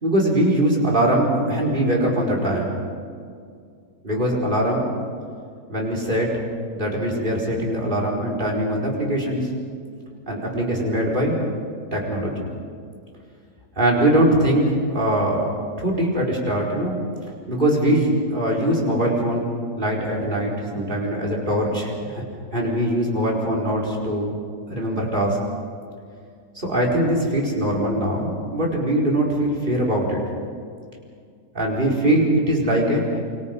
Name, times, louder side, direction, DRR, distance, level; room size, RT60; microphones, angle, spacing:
voice 1, 0.0-2.7 4.0-4.9 5.7-6.3 6.7-9.5 10.3-11.4 11.9-12.5 13.8-15.5 15.8-17.0 17.5-19.5 19.8-22.2 22.5-24.3 24.7-25.4 26.5-30.2 31.5-33.2, right 1 dB, 30° right, -2 dB, 5.0 m, -22 dB
28.0 x 25.5 x 5.4 m, 2.2 s
omnidirectional pair, 1.8 m